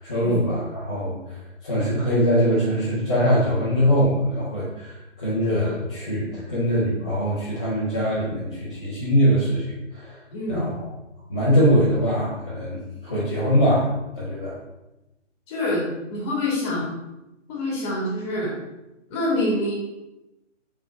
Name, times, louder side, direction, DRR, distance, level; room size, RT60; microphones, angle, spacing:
voice 1, 0.0-10.2 10.5-10.9 11.3-13.9 14.1-14.6, equal, 5° left, -16 dB, 0.5 m, -22 dB
voice 2, 10.3-10.7 15.5-16.9 17.5-18.5 19.1-19.7, left 1 dB, 20° left, -5 dB, 2.4 m, -26 dB
6.1 x 5.6 x 4.6 m, 0.96 s
hypercardioid pair, 155°, 38 cm